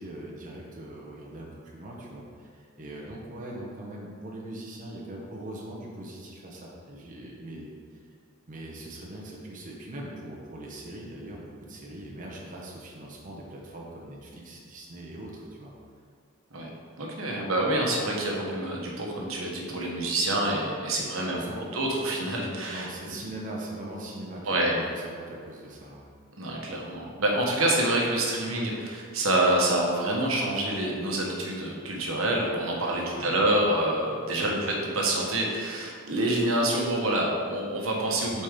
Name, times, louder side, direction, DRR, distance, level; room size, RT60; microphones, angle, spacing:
voice 1, 0.0-7.7 8.5-15.7 21.2-21.7 22.7-26.1 33.0-33.4 34.3-34.5 38.2-38.4, right 1 dB, 40° right, -3 dB, 1.0 m, -41 dB
voice 2, 17.0-21.4 21.7-22.9 24.4-24.8 26.4-38.4, right 1 dB, 75° right, -2 dB, 1.2 m, -27 dB
8.3 x 4.3 x 3.7 m, 2.1 s
head